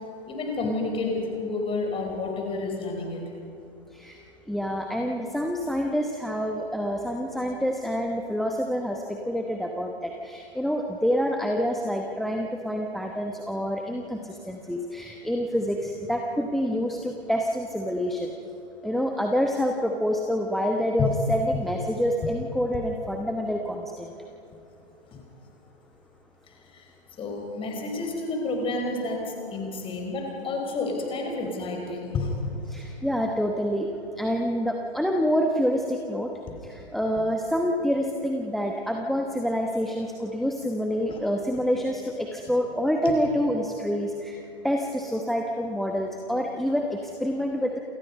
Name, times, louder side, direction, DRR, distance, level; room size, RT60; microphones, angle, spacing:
voice 1, 0.3-3.2 21.0-21.1 25.1-25.2 26.7-26.8 27.2-32.4 41.1-41.2 43.0-43.1, left 3 dB, 15° left, 2 dB, 4.9 m, -30 dB
voice 2, 4.5-18.3 18.8-24.1 32.7-33.9 34.2-36.3 36.6-47.8, equal, ahead, 3 dB, 1.0 m, -27 dB
28.5 x 28.0 x 5.4 m, 2.8 s
figure-of-eight pair, 120°, 32 cm